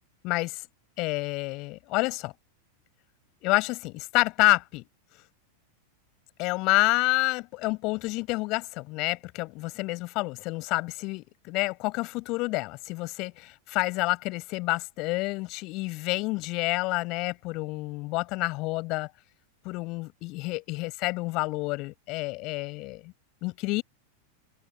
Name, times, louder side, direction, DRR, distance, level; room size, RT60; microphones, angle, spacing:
voice 1, 0.2-0.6 1.0-2.3 3.4-4.9 6.4-19.1 19.6-23.1 23.4-23.8, left 23 dB, 40° left, 7.3 m, -28 dB
figure-of-eight pair, 90°, 0 cm